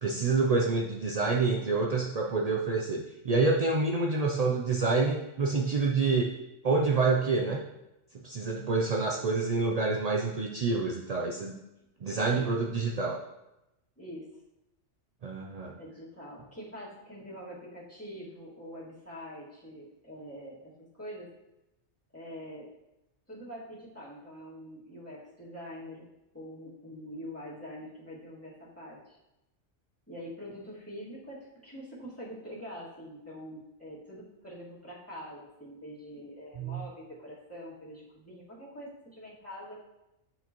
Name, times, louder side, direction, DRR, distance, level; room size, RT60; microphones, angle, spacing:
voice 1, 0.0-6.3 6.6-7.6 8.2-11.5 12.0-13.2 15.2-15.8 36.6-36.8, right 3 dB, 55° right, -1 dB, 0.4 m, -27 dB
voice 2, 12.2-12.5 14.0-14.2 15.7-20.7 21.0-21.3 22.1-22.7 23.3-26.1 26.3-29.2 30.1-39.7, equal, 10° left, -8 dB, 2.1 m, -44 dB
9.3 x 4.7 x 3.0 m, 0.93 s
omnidirectional pair, 1.3 m